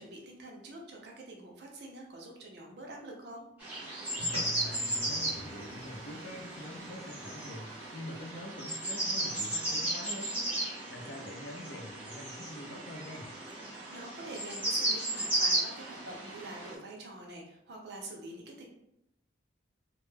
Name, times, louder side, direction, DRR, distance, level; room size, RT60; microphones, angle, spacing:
voice 1, 0.0-3.5 13.9-18.7, right 2 dB, 55° right, 0 dB, 0.5 m, -46 dB
sound 1, 3.6-16.7, right 1 dB, 10° right, 0.6 m, -35 dB
sound 2, 4.2-8.8, equal, 70° left, 0.8 m, -48 dB
voice 2, 4.6-10.5 10.9-13.3, left 1 dB, 55° left, 1 dB, 0.4 m, -45 dB
2.2 x 2.0 x 3.1 m, 0.80 s
head